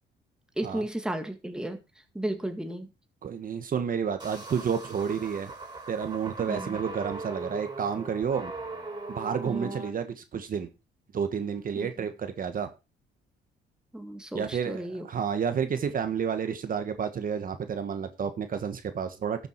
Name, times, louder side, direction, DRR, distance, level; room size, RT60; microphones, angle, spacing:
voice 1, 0.6-1.8 2.1-2.9 6.5-6.8 9.4-9.8 11.8-11.9 13.9-15.1, right 1 dB, 5° right, 2.0 m, -34 dB
voice 2, 3.2-5.5 5.9-8.5 9.1-10.7 11.1-12.7 14.3-19.5, right 7 dB, 50° right, 1.4 m, -30 dB
sound 1, 4.2-9.9, right 3 dB, 25° right, 6.4 m, -39 dB
13.0 x 7.1 x 4.6 m
cardioid pair, 100°, 19 cm